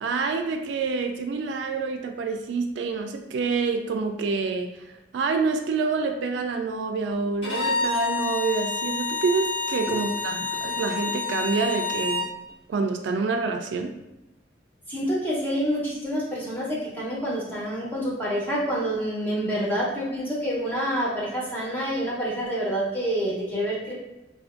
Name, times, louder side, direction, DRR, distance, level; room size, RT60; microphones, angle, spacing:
voice 1, 0.0-4.7 5.1-12.3 12.7-13.9, right 4 dB, 70° right, 5 dB, 0.3 m, -27 dB
Bowed string instrument, 7.4-12.3, left 4 dB, 80° left, 1.5 m, -28 dB
voice 2, 14.9-23.9, equal, 10° left, -6 dB, 0.7 m, -27 dB
3.5 x 2.5 x 2.4 m, 0.97 s
head